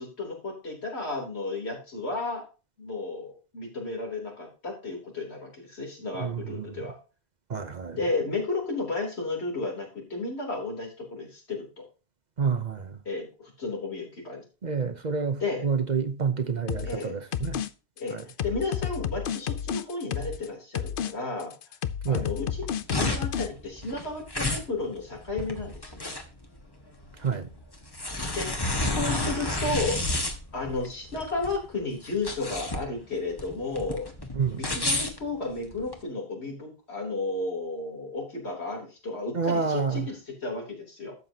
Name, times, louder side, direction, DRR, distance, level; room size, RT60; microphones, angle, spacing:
voice 1, 0.0-2.4 2.8-7.0 8.0-11.9 13.1-14.4 15.4-15.6 16.8-17.2 18.0-18.2 18.4-21.5 22.1-22.6 23.0-26.1 28.3-28.5 28.8-30.0 30.5-34.1 34.5-41.2, left 3 dB, 80° left, 3.7 m, -33 dB
voice 2, 6.2-6.9 7.5-8.0 12.4-13.0 14.6-17.6 18.1-18.2 22.0-22.3 27.2-27.5 34.3-34.7 39.3-40.1, right 5 dB, 45° right, 0.9 m, -29 dB
sound 1, 16.7-17.0 17.3-17.7 18.0-20.5 20.8-21.1 21.4-23.5, left 9 dB, 60° left, 0.7 m, -31 dB
sound 2, 22.5-36.0, left 2 dB, 20° left, 1.3 m, -31 dB
12.5 x 7.7 x 2.8 m
omnidirectional pair, 1.1 m